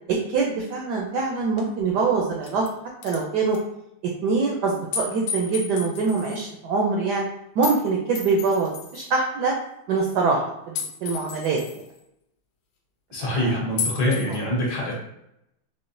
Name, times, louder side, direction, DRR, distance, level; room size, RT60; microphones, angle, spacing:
voice 1, 0.1-2.6 3.0-3.6 4.2-7.2 7.6-9.5 9.9-10.7 11.0-11.6 13.2-13.5 14.3-14.4, right 4 dB, 80° right, 0 dB, 0.9 m, -24 dB
sound 1, 1.6-1.7 2.3-2.7 3.0-3.2 3.5-3.6 4.9-6.4 7.6-7.8 8.1-9.1 10.8-11.9 13.8-14.4, left 6 dB, 90° left, 1.5 m, -32 dB
voice 2, 13.1-14.9, equal, 60° left, -3 dB, 1.4 m, -25 dB
4.8 x 2.1 x 2.6 m, 0.82 s
omnidirectional pair, 2.3 m